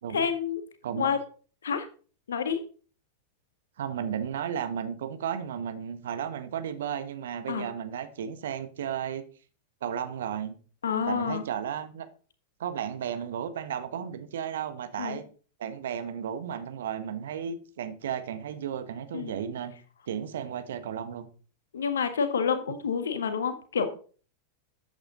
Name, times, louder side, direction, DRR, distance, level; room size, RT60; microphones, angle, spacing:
voice 1, 0.1-0.6 1.0-1.2 1.6-1.8 2.3-2.6 7.5-7.7 10.8-11.4 15.0-15.2 19.1-19.3 21.7-23.9, left 6 dB, 65° left, 1.7 m, -28 dB
voice 2, 3.8-9.2 9.8-10.6 11.0-12.1 12.6-15.2 15.6-19.7 20.1-21.3, right 8 dB, 60° right, 1.4 m, -34 dB
13.5 x 8.9 x 4.0 m
figure-of-eight pair, 90°, 0 cm